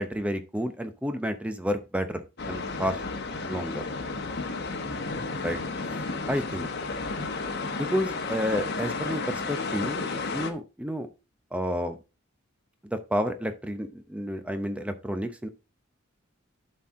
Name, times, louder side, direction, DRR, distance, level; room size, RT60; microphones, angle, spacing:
voice 1, 0.0-3.0 3.4-3.9 5.4-5.6 5.9-6.0 6.3-6.7 7.8-10.1 10.3-11.1 11.5-12.0 12.9-15.5, equal, 5° right, 8 dB, 0.7 m, -30 dB
sound 1, 2.4-10.5, left 3 dB, 50° left, 1.1 m, -32 dB
11.0 x 4.4 x 3.7 m, 0.28 s
head